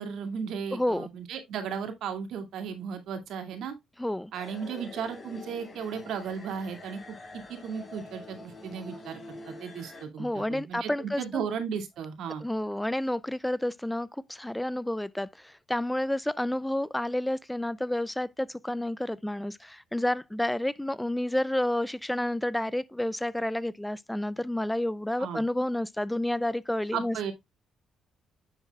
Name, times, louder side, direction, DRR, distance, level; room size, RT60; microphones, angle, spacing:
voice 1, 0.0-3.8 4.3-7.0 7.5-12.4 25.2-25.4 26.9-27.3, right 7 dB, 80° right, 2.3 m, -35 dB
voice 2, 0.7-1.1 4.0-4.3 10.2-11.4 12.4-27.3, left 1 dB, 5° left, 0.4 m, -30 dB
sound 1, 4.3-10.1, left 2 dB, 30° left, 3.9 m, -46 dB
9.9 x 7.2 x 2.3 m
cardioid pair, 90°, 0 cm